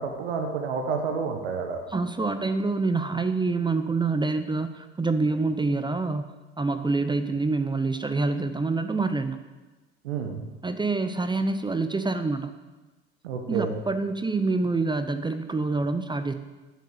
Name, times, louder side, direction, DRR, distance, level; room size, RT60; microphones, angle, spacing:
voice 1, 0.0-1.8 10.0-10.4 13.2-13.8, right 5 dB, 85° right, 4 dB, 1.3 m, -29 dB
voice 2, 1.9-9.4 10.6-12.6 13.5-16.3, right 3 dB, 15° right, 10 dB, 0.7 m, -26 dB
8.3 x 8.0 x 8.3 m, 1.2 s
hypercardioid pair, 70°, 31 cm